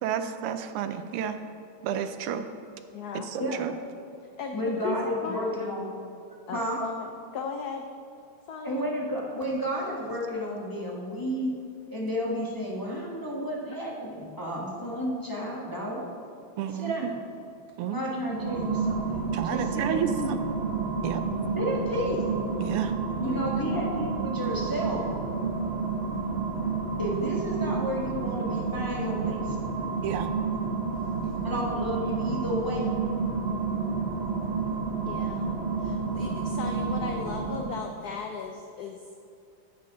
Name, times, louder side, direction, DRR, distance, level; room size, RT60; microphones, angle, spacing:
voice 1, 0.0-1.4 1.8-2.5 3.3-3.7 16.6-17.1 17.8-18.1 19.3-20.1 21.0-21.2 22.6-22.9 30.0-30.3, right 9 dB, 90° right, 9 dB, 1.6 m, -31 dB
voice 2, 2.9-3.3 4.4-5.0 5.2-5.6 6.5-7.9 8.5-8.9 23.2-23.9 31.2-31.7 35.1-39.1, left 6 dB, 90° left, 3 dB, 0.8 m, -37 dB
voice 3, 4.5-5.9 6.5-6.8 8.6-11.5 11.9-16.1 16.7-17.1 17.9-20.3 21.5-22.2 23.2-25.0 27.0-29.6 31.4-32.9, equal, 15° left, -4 dB, 0.7 m, -32 dB
sound 1, 18.2-38.0, right 4 dB, 55° right, 0.7 m, -30 dB
10.5 x 8.4 x 3.9 m, 2.5 s
omnidirectional pair, 2.4 m